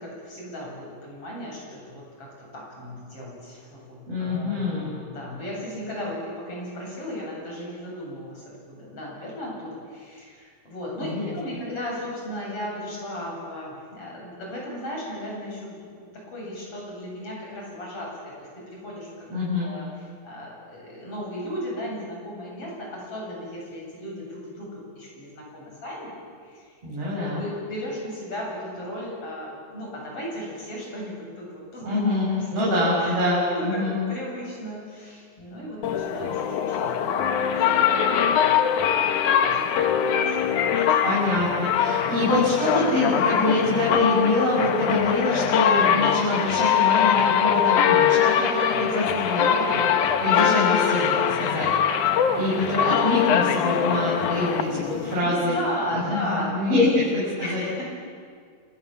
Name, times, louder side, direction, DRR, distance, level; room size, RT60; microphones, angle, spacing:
voice 1, 0.0-16.0 16.3-18.3 18.7-19.3 19.6-19.9 20.2-26.1 26.5-26.7 27.2-32.5 33.0-33.2 33.5-36.8 37.0-38.7 39.5-40.9 55.2-56.8 57.4-58.0, equal, 40° left, -3 dB, 9.1 m, -36 dB
voice 2, 4.1-4.9 11.0-11.3 19.3-19.7 26.8-27.4 31.8-34.0 41.0-51.7 52.0-55.5 55.9-57.6, left 2 dB, 40° right, -7 dB, 7.6 m, -25 dB
sound 1, 35.8-55.2, left 8 dB, 65° left, 2.5 m, -22 dB
29.0 x 27.5 x 7.3 m, 2.1 s
omnidirectional pair, 4.2 m